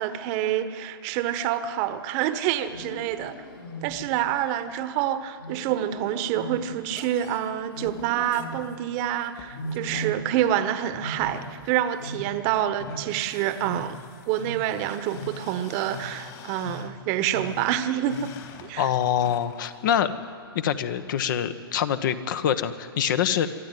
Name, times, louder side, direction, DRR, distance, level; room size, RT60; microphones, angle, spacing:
voice 1, 0.0-3.3 3.8-14.0 14.3-18.3 18.6-18.9, right 11 dB, 40° right, 11 dB, 1.2 m, -27 dB
Wild animals, 2.6-4.3 5.4-7.3 7.7-8.9 9.5-10.6 10.8-13.3 13.6-18.5 18.9-19.3 19.8-20.2 20.9-21.4, equal, 75° left, 7.9 m, -39 dB
sound 1, 6.9-19.8, left 7 dB, 35° left, 2.2 m, -48 dB
voice 2, 18.8-20.1 20.5-23.5, left 9 dB, 55° left, 10 dB, 1.3 m, -25 dB
23.5 x 13.0 x 9.2 m, 2.1 s
hypercardioid pair, 120°, 13 cm